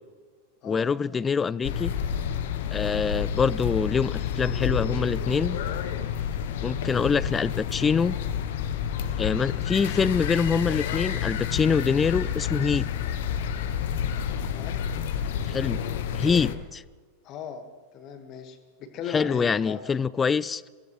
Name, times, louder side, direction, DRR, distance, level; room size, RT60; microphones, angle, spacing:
voice 1, 0.6-1.9 2.7-5.6 6.6-8.2 9.2-12.9 15.5-15.8 16.1-16.8 19.1-20.7, left 6 dB, 20° left, 0.3 m, -25 dB
sound 1, 1.6-16.6, left 8 dB, 55° left, 1.0 m, -29 dB
voice 2, 14.5-14.8 17.2-17.7 17.9-19.8, left 7 dB, 35° left, 1.8 m, -38 dB
24.0 x 16.5 x 3.3 m
figure-of-eight pair, 90°, 0 cm